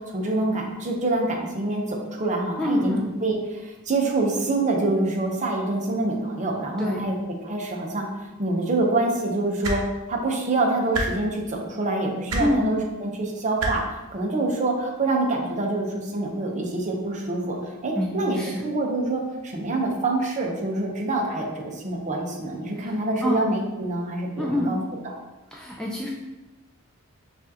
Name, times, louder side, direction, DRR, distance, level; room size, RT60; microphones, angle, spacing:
voice 1, 0.0-3.0 3.2-7.1 7.4-8.1 8.4-9.8 10.1-13.8 14.1-17.6 17.8-21.5 21.7-24.8, right 2 dB, 35° right, 0 dB, 0.7 m, -26 dB
voice 2, 2.6-3.1 6.8-7.1 12.4-12.7 17.9-18.6 22.8-23.4 24.4-24.7 25.5-26.1, left 1 dB, 5° left, -3 dB, 0.3 m, -26 dB
sound 1, 9.6-9.8 10.9-11.1 12.3-12.4 13.6-13.7 15.0-15.1, right 2 dB, 70° right, 0.7 m, -26 dB
6.0 x 2.5 x 2.8 m, 1.1 s
head